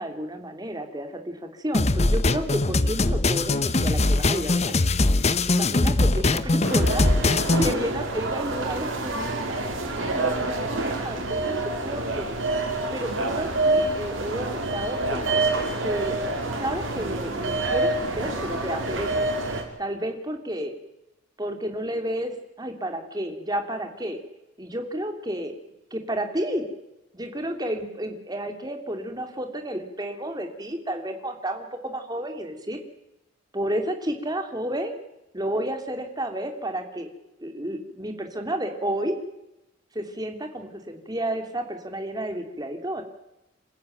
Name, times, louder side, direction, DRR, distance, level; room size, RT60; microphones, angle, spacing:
voice 1, 0.0-4.7 5.5-9.6 10.0-12.4 12.9-14.5 14.7-15.2 15.8-16.2 16.6-19.3 19.8-20.7 21.4-24.2 24.6-25.5 25.9-26.7 27.1-32.8 33.5-35.0 35.3-37.1 37.4-39.1 39.9-43.0, right 1 dB, 20° right, 5 dB, 2.9 m, -31 dB
sound 1, 1.7-7.7, left 2 dB, 35° left, 0.9 m, -21 dB
sound 2, 6.6-19.6, right 2 dB, 80° right, 5.0 m, -27 dB
27.0 x 15.0 x 9.2 m, 0.92 s
head